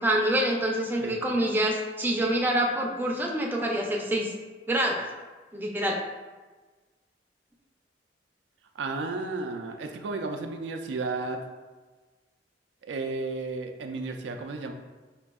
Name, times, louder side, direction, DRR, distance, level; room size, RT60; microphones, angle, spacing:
voice 1, 0.0-4.3 4.7-5.0 5.5-6.0, right 1 dB, 10° right, -1 dB, 0.4 m, -26 dB
voice 2, 8.8-11.4 12.8-14.7, right 3 dB, 85° right, 5 dB, 0.3 m, -33 dB
5.0 x 2.6 x 2.2 m, 1.3 s
head